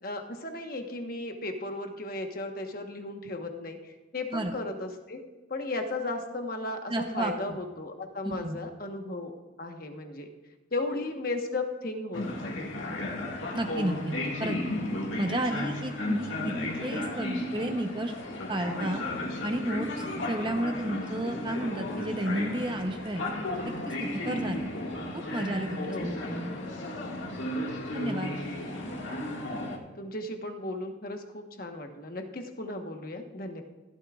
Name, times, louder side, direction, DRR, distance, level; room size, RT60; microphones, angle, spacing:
voice 1, 0.0-5.2 5.5-10.3 10.7-12.7 25.9-26.2 28.9-29.0 29.9-33.6, left 2 dB, 50° left, 4 dB, 1.2 m, -35 dB
voice 2, 6.9-7.3 8.2-8.6 13.5-14.1 14.4-14.6 15.2-16.5 16.8-18.1 18.5-19.0 19.4-23.2 23.8-24.7 25.1-26.5 27.9-28.3, right 1 dB, 25° right, 4 dB, 0.8 m, -32 dB
sound 1, 12.1-29.8, left 1 dB, 80° left, 1.9 m, -34 dB
15.5 x 12.5 x 2.4 m, 1.2 s
head